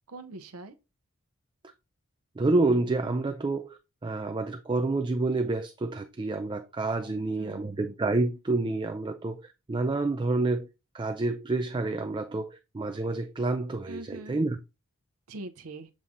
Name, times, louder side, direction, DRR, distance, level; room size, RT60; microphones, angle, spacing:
voice 1, 0.1-0.7 7.0-7.7 13.9-14.4 15.3-15.9, right 2 dB, 80° right, 0.7 m, -43 dB
voice 2, 2.4-3.8 4.0-10.7 10.9-12.5 12.7-14.6, right 2 dB, 20° right, 0.4 m, -28 dB
7.4 x 2.7 x 4.8 m
head